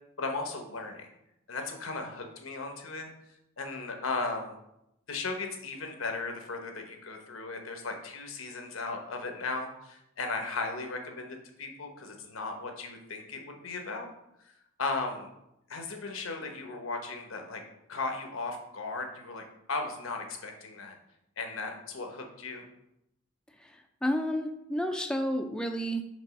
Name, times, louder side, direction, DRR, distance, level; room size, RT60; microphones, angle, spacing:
voice 1, 0.2-1.1 1.5-3.1 3.6-4.6 5.1-14.1 14.8-15.3 15.7-17.6 17.9-21.0 21.4-22.6, left 3 dB, 90° left, 4 dB, 1.0 m, -36 dB
voice 2, 23.6-26.0, equal, 5° left, 5 dB, 0.3 m, -31 dB
5.3 x 3.8 x 5.2 m, 0.83 s
head